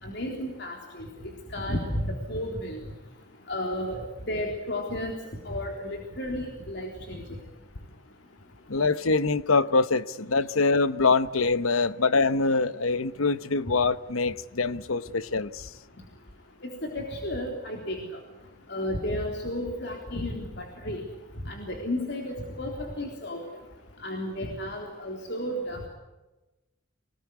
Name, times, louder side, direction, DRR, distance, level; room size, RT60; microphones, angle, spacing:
voice 1, 0.0-1.1 1.5-2.8 3.5-4.0 4.3-5.2 5.4-7.2 16.6-18.1 18.7-21.1 21.5-23.4 24.0-25.8, left 1 dB, 55° left, 3.7 m, -32 dB
voice 2, 8.7-15.7, left 3 dB, 85° left, 1.0 m, -24 dB
27.0 x 19.0 x 9.7 m
head